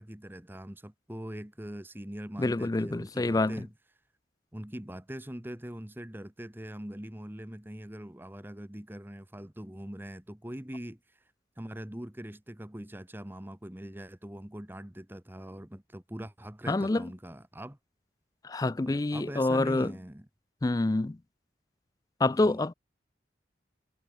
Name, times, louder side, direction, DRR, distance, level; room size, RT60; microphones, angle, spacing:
voice 1, 0.0-3.7 4.5-17.8 18.8-20.3 22.3-22.6, equal, 10° right, 1.1 m, -42 dB
voice 2, 2.4-3.6 16.7-17.1 18.4-19.9 20.6-21.2 22.2-22.7, left 2 dB, 20° left, 0.4 m, -27 dB
head